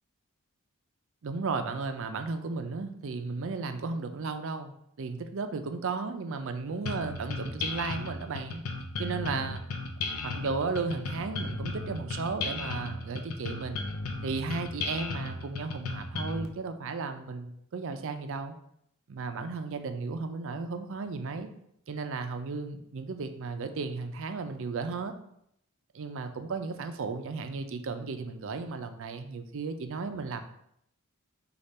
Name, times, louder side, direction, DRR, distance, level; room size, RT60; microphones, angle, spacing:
voice 1, 1.2-8.6 9.0-9.6 10.2-13.9 14.2-18.6 19.1-21.5 21.9-25.1 25.9-30.4, right 4 dB, 60° right, 8 dB, 0.5 m, -34 dB
sound 1, 6.9-16.5, left 3 dB, 75° left, 0.6 m, -35 dB
5.1 x 2.4 x 4.2 m, 0.73 s
head